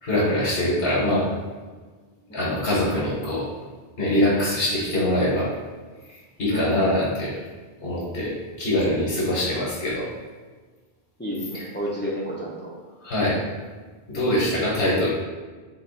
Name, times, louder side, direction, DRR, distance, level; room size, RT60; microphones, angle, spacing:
voice 1, 0.0-1.3 2.3-3.5 4.0-5.5 6.1-7.3 7.8-8.3 8.6-10.1 11.5-11.6 13.0-13.3 14.1-15.1, left 1 dB, 80° left, -8 dB, 1.4 m, -23 dB
voice 2, 6.5-6.8 11.2-12.7 13.2-13.4, equal, 15° left, -5 dB, 0.5 m, -31 dB
3.9 x 2.4 x 4.0 m, 1.4 s
omnidirectional pair, 1.0 m